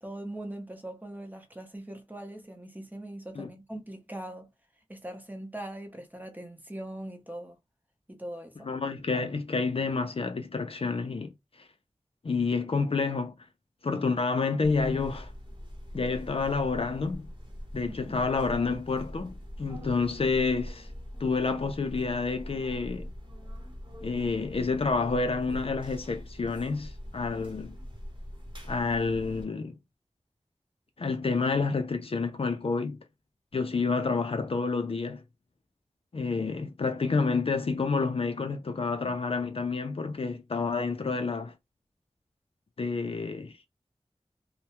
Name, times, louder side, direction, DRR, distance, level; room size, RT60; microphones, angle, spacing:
voice 1, 0.0-4.5 4.9-7.6 8.1-8.7 17.9-18.2, right 1 dB, 15° right, 0.7 m, -41 dB
voice 2, 8.6-11.7 12.2-13.3 13.8-15.3 15.9-17.3 17.7-20.9 21.2-23.1 24.0-27.8 28.6-29.8 31.0-33.0 33.5-35.2 36.1-41.5 42.8-43.6, left 4 dB, 55° left, 0.4 m, -29 dB
sound 1, 14.6-29.4, equal, 40° right, 0.9 m, -42 dB
2.2 x 2.1 x 2.8 m
wide cardioid pair, 60°, 12 cm